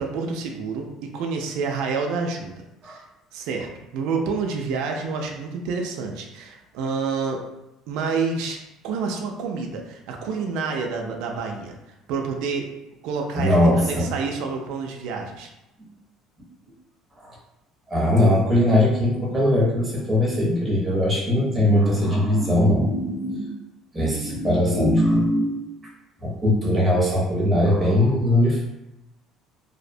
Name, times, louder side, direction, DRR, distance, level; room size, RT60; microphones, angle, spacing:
voice 1, 0.0-2.5 2.8-3.1 3.3-3.7 3.9-7.5 7.9-8.6 8.8-11.8 12.1-12.7 13.0-15.5, right 4 dB, 65° right, 2 dB, 0.3 m, -28 dB
voice 2, 13.3-14.1 17.2-17.3 17.9-23.5 23.9-25.5 26.2-28.6, left 1 dB, 10° right, -5 dB, 0.6 m, -20 dB
2.5 x 2.0 x 2.5 m, 0.92 s
cardioid pair, 175°, 0 cm